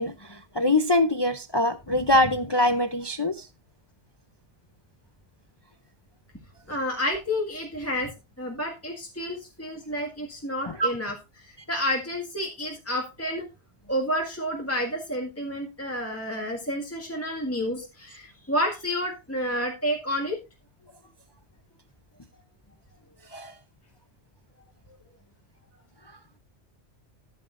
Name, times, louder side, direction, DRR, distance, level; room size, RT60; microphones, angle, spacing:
voice 1, 0.0-3.5 10.8-10.9 23.3-23.5, left 1 dB, 30° left, 0.5 m, -23 dB
voice 2, 6.7-8.1 8.4-13.5 13.9-20.4, equal, 10° left, 1.7 m, -30 dB
14.0 x 8.5 x 2.5 m
omnidirectional pair, 1.2 m